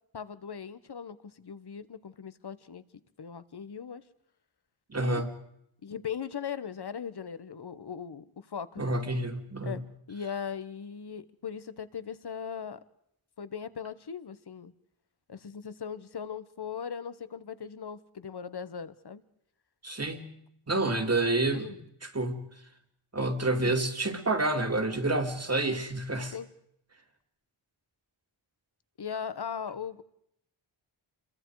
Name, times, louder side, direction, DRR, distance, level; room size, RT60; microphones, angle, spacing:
voice 1, 0.1-2.8 3.2-4.0 4.9-5.2 5.8-8.9 9.6-9.8 10.1-12.8 13.4-14.7 15.3-19.2 21.5-21.8 23.6-23.7 25.1-25.2 26.3-26.5 29.0-30.0, left 7 dB, 50° left, 14 dB, 1.2 m, -39 dB
voice 2, 4.9-5.3 8.8-9.8 19.8-20.3 20.7-22.5 23.1-26.3, right 2 dB, 30° right, 5 dB, 2.5 m, -29 dB
28.5 x 23.0 x 4.8 m, 0.75 s
wide cardioid pair, 110°, 50 cm